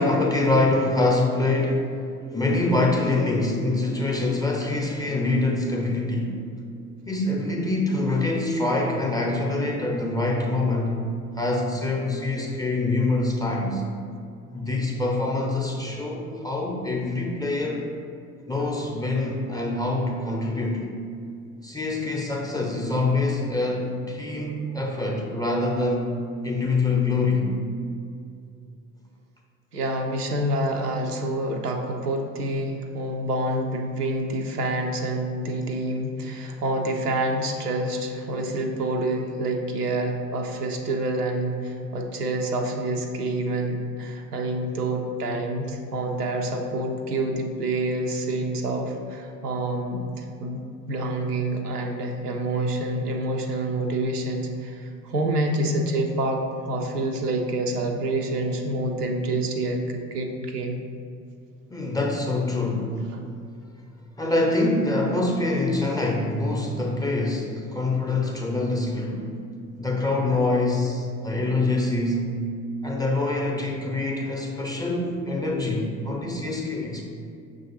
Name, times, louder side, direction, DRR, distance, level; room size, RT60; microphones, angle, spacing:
voice 1, 0.0-2.0 2.3-6.3 7.1-11.0 11.4-13.8 14.5-17.9 18.5-20.8 21.6-26.1 26.4-27.5 61.7-63.0 64.2-69.3 69.8-72.4 72.8-77.0, left 2 dB, 10° left, -2 dB, 0.5 m, -25 dB
voice 2, 29.7-60.8, right 1 dB, 85° right, 2 dB, 0.5 m, -27 dB
6.2 x 2.4 x 3.0 m, 2.4 s
figure-of-eight pair, 60°, 45 cm